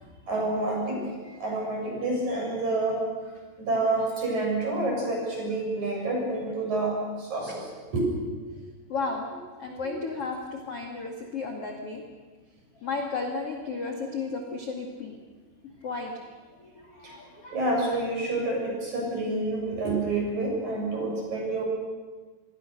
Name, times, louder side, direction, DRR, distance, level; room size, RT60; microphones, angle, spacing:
voice 1, 0.3-1.1 1.4-3.0 3.6-8.1 9.8-9.9 17.0-17.1 17.5-21.6, right 2 dB, 35° right, -1 dB, 8.1 m, -28 dB
voice 2, 8.9-9.3 9.6-12.0 12.8-15.2 15.8-16.3 16.6-17.6, left 4 dB, 45° left, 1 dB, 2.2 m, -34 dB
28.0 x 21.5 x 6.7 m, 1.4 s
omnidirectional pair, 5.5 m